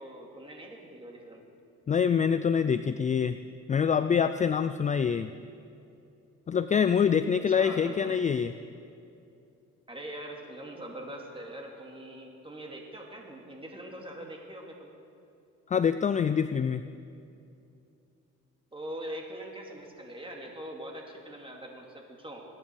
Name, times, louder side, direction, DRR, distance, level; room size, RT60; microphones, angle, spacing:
voice 1, 0.0-1.4 7.5-8.2 9.9-14.9 18.7-22.4, right 1 dB, 15° right, 0 dB, 2.5 m, -42 dB
voice 2, 1.9-3.4 3.7-5.3 6.5-8.5 15.7-16.8, left 7 dB, 25° left, 12 dB, 0.3 m, -25 dB
21.5 x 9.9 x 4.7 m, 2.6 s
cardioid pair, 90°, 30 cm